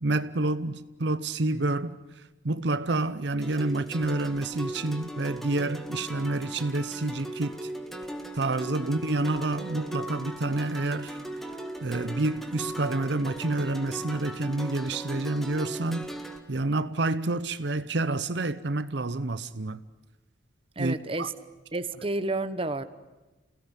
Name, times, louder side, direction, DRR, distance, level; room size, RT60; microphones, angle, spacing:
voice 1, 0.0-2.0 2.4-7.7 8.3-11.2 11.8-16.0 16.5-19.8 20.8-21.3, right 2 dB, 60° right, 0.8 m, -28 dB
sound 1, 3.4-16.4, right 1 dB, ahead, 1.8 m, -38 dB
voice 2, 20.8-21.3 21.7-22.8, right 2 dB, 30° right, 1.0 m, -30 dB
29.0 x 17.0 x 10.0 m
head